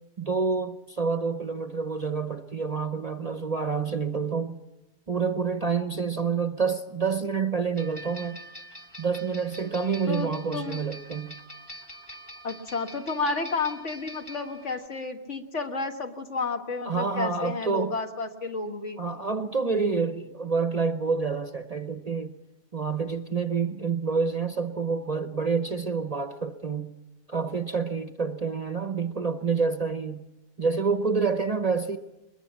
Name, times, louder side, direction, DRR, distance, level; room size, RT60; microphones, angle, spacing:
voice 1, 0.2-4.6 5.1-8.4 9.0-11.4 16.8-18.0 19.0-22.3 22.7-26.9 27.3-30.2 30.6-32.0, right 5 dB, 35° right, 9 dB, 0.8 m, -28 dB
sound 1, 7.8-14.9, equal, 20° left, 1.4 m, -45 dB
voice 2, 10.1-10.8 12.4-19.0, left 3 dB, 60° left, 5 dB, 1.9 m, -31 dB
22.0 x 22.0 x 7.4 m, 0.99 s
omnidirectional pair, 1.4 m